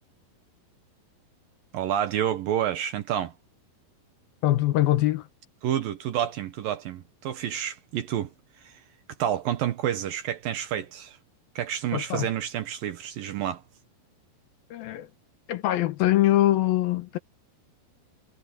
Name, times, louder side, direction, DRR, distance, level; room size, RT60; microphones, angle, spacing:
voice 1, 1.7-3.3 5.6-8.8 9.2-11.2 11.6-13.6, right 10 dB, 70° right, 2.3 m, -29 dB
voice 2, 4.4-5.2 11.9-12.3 14.7-15.1 15.5-17.2, left 14 dB, 75° left, 2.3 m, -23 dB
omnidirectional pair, 5.1 m